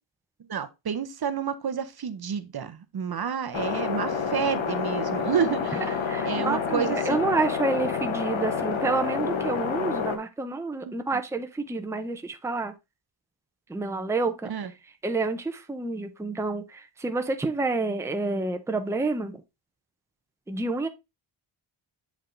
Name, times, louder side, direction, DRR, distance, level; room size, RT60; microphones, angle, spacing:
voice 1, 0.4-5.8 6.2-7.2 10.9-11.0 14.5-14.7, right 7 dB, 50° right, 0.7 m, -30 dB
sound 1, 3.5-10.2, left 6 dB, 70° left, 1.1 m, -28 dB
voice 2, 6.1-12.7 13.7-14.5 15.0-19.4 20.5-20.9, right 3 dB, 5° right, 0.6 m, -29 dB
8.0 x 3.5 x 3.7 m
wide cardioid pair, 115°, 48 cm